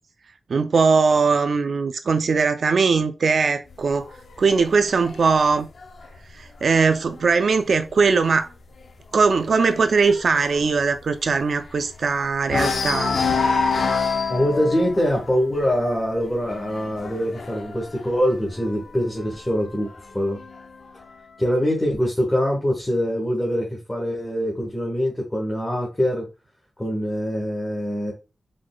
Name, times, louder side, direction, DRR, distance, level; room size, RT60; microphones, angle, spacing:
voice 1, 0.5-4.1 4.4-5.7 6.3-8.5 9.1-13.2, right 4 dB, 70° right, 0.4 m, -20 dB
sound 1, 3.7-7.3 7.7-8.1 8.3-8.4 8.8-12.1 12.4-19.0 19.9-20.9, left 4 dB, 65° left, 0.6 m, -28 dB
voice 2, 14.3-20.4 21.4-26.3 26.8-28.1, equal, 15° left, 1.4 m, -24 dB
4.7 x 4.0 x 2.2 m
wide cardioid pair, 95°, 0 cm